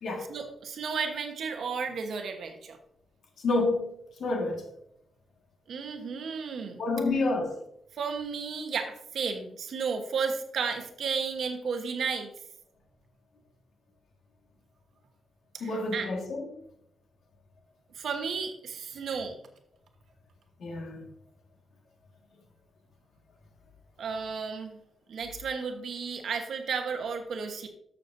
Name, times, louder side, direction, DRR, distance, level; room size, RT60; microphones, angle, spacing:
voice 1, 0.3-2.8 5.7-6.8 8.0-12.3 15.5-16.1 18.0-19.3 24.0-24.8 25.1-27.7, right 5 dB, 60° right, 1.1 m, -33 dB
voice 2, 3.4-3.9 4.2-4.6 6.8-7.5 15.6-16.5 20.6-21.0, left 2 dB, 60° left, 1.8 m, -28 dB
13.0 x 6.7 x 2.7 m
wide cardioid pair, 165°, 0 cm